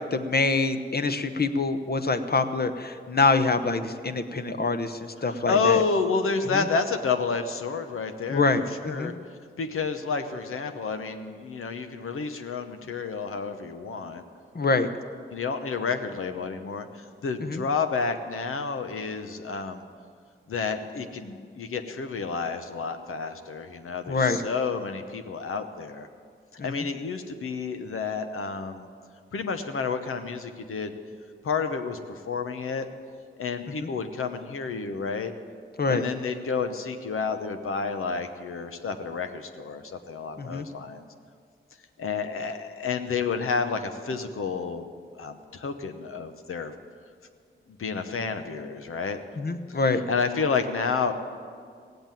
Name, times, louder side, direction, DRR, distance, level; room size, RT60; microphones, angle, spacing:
voice 1, 0.1-5.8 6.5-6.6 8.3-9.1 14.5-14.9 17.4-17.6 24.1-24.4 26.6-26.9 33.8-33.9 35.8-36.0 40.4-40.7 49.4-50.0, left 3 dB, 50° left, 9 dB, 1.0 m, -25 dB
voice 2, 5.2-9.1 9.6-14.2 15.3-19.8 20.5-26.1 26.6-28.9 29.3-30.9 31.4-32.9 33.4-35.3 35.9-41.0 42.0-44.9 45.2-46.7 47.8-49.2 49.7-49.8 50.1-51.1, left 5 dB, 80° left, 7 dB, 1.0 m, -30 dB
16.5 x 8.0 x 9.0 m, 2.1 s
cardioid pair, 50°, 21 cm